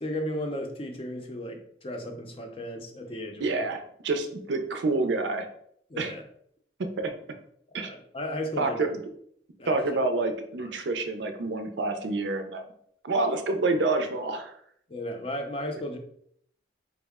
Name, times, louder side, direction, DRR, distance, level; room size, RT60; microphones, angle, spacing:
voice 1, 0.0-3.7 5.9-6.2 7.7-8.8 9.6-9.8 10.6-10.7 14.9-16.0, left 1 dB, 30° left, 3 dB, 0.5 m, -35 dB
voice 2, 3.4-5.5 6.0-6.1 6.8-7.1 7.7-7.9 8.6-9.0 9.7-12.6 13.0-14.5, right 3 dB, 75° right, 6 dB, 0.5 m, -28 dB
4.4 x 2.1 x 3.4 m, 0.66 s
head